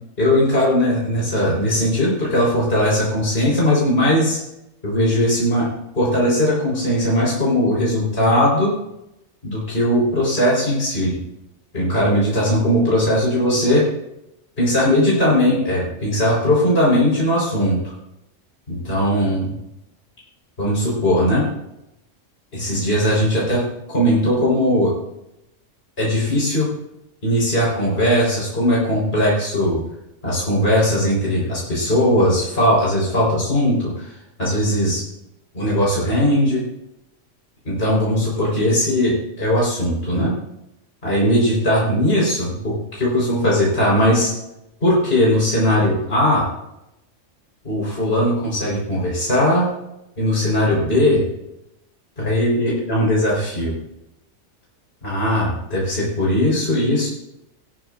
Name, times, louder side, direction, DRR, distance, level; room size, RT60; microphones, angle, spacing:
voice 1, 0.2-4.4 4.8-5.7 6.0-8.7 9.4-11.2 11.7-13.8 14.6-17.9 18.7-19.5 20.6-21.4 22.5-24.9 26.0-26.7 27.2-29.8 30.2-34.1 34.4-35.0 35.5-36.6 37.7-40.3 41.0-44.3 44.8-46.4 47.6-49.7 50.2-51.2 52.2-53.8 55.0-57.1, equal, 45° left, -5 dB, 4.6 m, -19 dB
18.0 x 13.5 x 2.5 m, 0.86 s
omnidirectional pair, 1.4 m